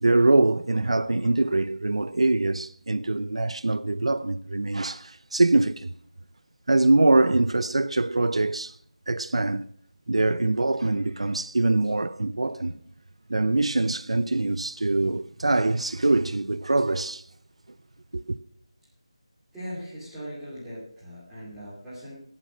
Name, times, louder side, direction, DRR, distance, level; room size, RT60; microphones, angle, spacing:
voice 1, 0.0-5.9 6.7-8.7 9.1-9.7 10.1-12.8 13.3-17.2 18.1-18.4, right 2 dB, 70° right, 0.7 m, -23 dB
voice 2, 19.5-22.1, equal, ahead, 2.8 m, -39 dB
20.0 x 7.7 x 6.3 m
figure-of-eight pair, 180°, 3 cm